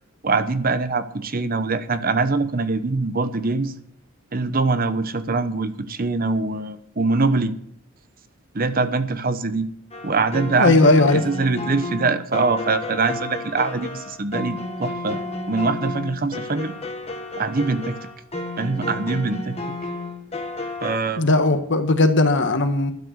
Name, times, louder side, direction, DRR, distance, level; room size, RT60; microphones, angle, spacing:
voice 1, 0.2-3.8 4.3-7.5 8.5-9.7 10.0-15.2 15.5-16.7 17.3-18.0 18.6-19.6 20.8-21.2, right 3 dB, 45° right, 12 dB, 0.9 m, -23 dB
sound 1, 9.9-21.0, left 2 dB, 30° left, 1.5 m, -32 dB
voice 2, 10.6-11.2 21.2-22.9, left 2 dB, 60° left, 8 dB, 1.4 m, -17 dB
12.0 x 9.8 x 6.6 m, 0.66 s
head